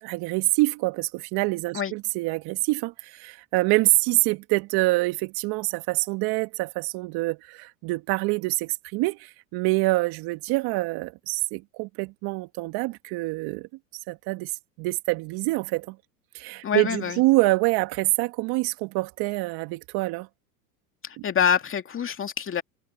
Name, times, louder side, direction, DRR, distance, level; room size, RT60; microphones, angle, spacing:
voice 1, 0.0-13.7 14.1-14.5 14.8-16.0 16.3-20.3, right 23 dB, 55° right, 2.0 m, -26 dB
voice 2, 16.6-17.2 21.0-22.6, left 7 dB, 25° left, 2.4 m, -26 dB
hypercardioid pair, 100°, 45 cm